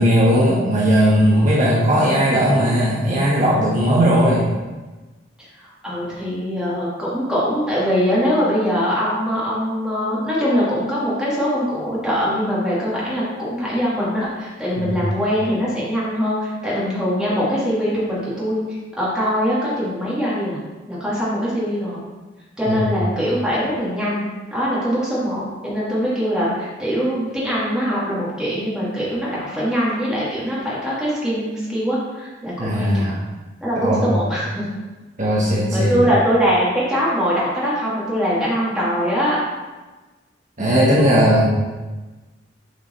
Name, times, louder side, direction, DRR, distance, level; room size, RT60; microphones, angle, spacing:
voice 1, 0.0-4.5 14.8-15.0 22.7-22.9 32.6-33.2 33.8-34.1 35.2-36.0 40.6-41.5, equal, 40° right, -6 dB, 1.4 m, -17 dB
voice 2, 5.6-18.6 19.0-20.6 20.9-22.1 22.6-24.3 24.5-33.2 33.6-34.6 35.7-39.4, equal, 5° right, -9 dB, 2.3 m, -22 dB
7.7 x 5.0 x 4.4 m, 1.2 s
head